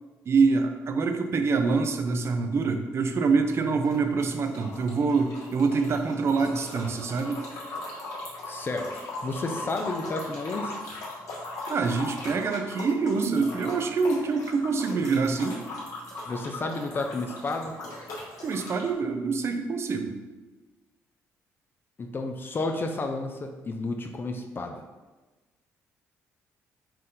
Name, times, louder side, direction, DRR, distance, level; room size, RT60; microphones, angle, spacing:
voice 1, 0.2-7.5 11.7-15.6 18.4-20.2, right 4 dB, 50° right, 6 dB, 0.5 m, -25 dB
sound 1, 3.2-3.6 3.8-18.9, left 2 dB, 65° left, 1.4 m, -39 dB
voice 2, 8.5-10.7 16.2-17.7 22.0-24.8, left 3 dB, 35° left, 5 dB, 0.5 m, -31 dB
4.3 x 2.5 x 3.8 m, 1.2 s
supercardioid pair, 70°, 6 cm